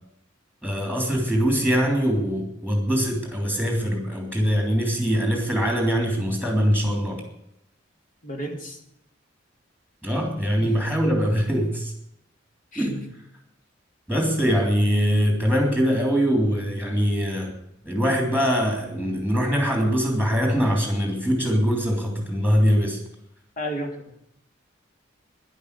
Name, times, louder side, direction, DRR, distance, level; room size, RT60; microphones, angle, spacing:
voice 1, 0.6-7.2 10.0-11.9 12.7-13.0 14.1-17.5 17.8-23.0, equal, 5° left, 0 dB, 3.2 m, -22 dB
voice 2, 8.2-8.8 10.6-10.7 12.7-13.0 23.6-24.2, equal, 45° left, 3 dB, 2.8 m, -32 dB
11.5 x 11.0 x 8.3 m, 0.77 s
head